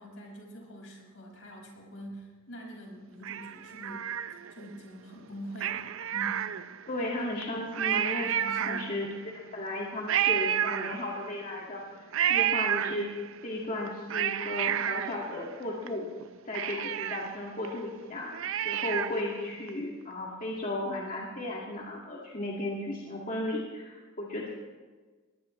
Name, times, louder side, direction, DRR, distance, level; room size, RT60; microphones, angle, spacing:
voice 1, 0.0-4.1 4.5-6.4 8.2-8.9, equal, 65° left, 0 dB, 5.3 m, -44 dB
Cat, 3.2-4.7 5.6-7.0 7.4-7.5 7.7-9.2 10.1-11.4 12.1-13.4 13.9-15.9 16.2-16.3 16.5-19.3 19.7-19.8, right 10 dB, 65° right, 0.5 m, -30 dB
voice 2, 6.9-8.3 8.6-13.1 13.4-16.1 16.5-18.3 18.6-24.5, left 1 dB, 40° left, -4 dB, 2.0 m, -35 dB
21.5 x 19.0 x 3.2 m, 1.4 s
head